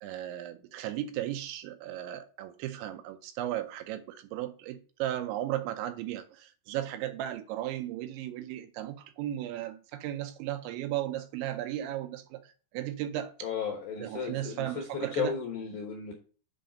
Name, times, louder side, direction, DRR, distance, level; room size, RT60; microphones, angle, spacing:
voice 1, 0.0-12.4 12.7-13.3 14.0-15.3, right 13 dB, 80° right, 2.8 m, -35 dB
voice 2, 13.4-16.1, left 6 dB, 70° left, 2.3 m, -34 dB
7.9 x 3.7 x 5.0 m
omnidirectional pair, 5.5 m